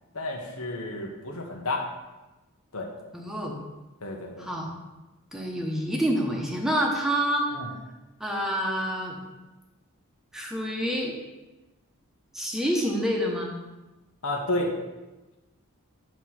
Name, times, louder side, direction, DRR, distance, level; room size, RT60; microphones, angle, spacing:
voice 1, 0.1-1.9 2.7-2.9 4.0-4.5 7.5-7.7 14.2-14.7, left 2 dB, 70° left, 1 dB, 1.2 m, -31 dB
voice 2, 3.1-3.6 4.4-4.7 5.3-7.5 8.2-9.2 10.3-11.1 12.3-13.5, equal, ahead, -1 dB, 1.0 m, -27 dB
9.1 x 3.1 x 5.8 m, 1.1 s
head